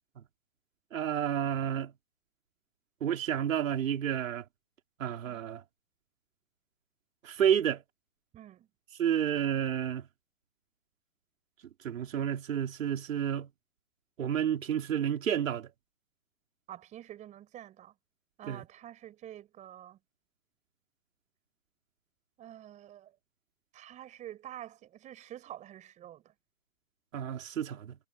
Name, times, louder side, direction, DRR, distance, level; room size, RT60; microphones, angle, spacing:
voice 1, 0.9-1.9 3.0-4.4 5.0-5.6 7.2-7.8 9.0-10.1 11.8-13.5 14.2-15.7 18.5-18.6 27.1-28.0, right 9 dB, 70° right, 3.7 m, -30 dB
voice 2, 8.3-8.7 16.7-17.9 18.4-20.0 22.4-23.1 23.7-26.3, right 12 dB, 20° right, 5.1 m, -47 dB
hypercardioid pair, 155°, 40 cm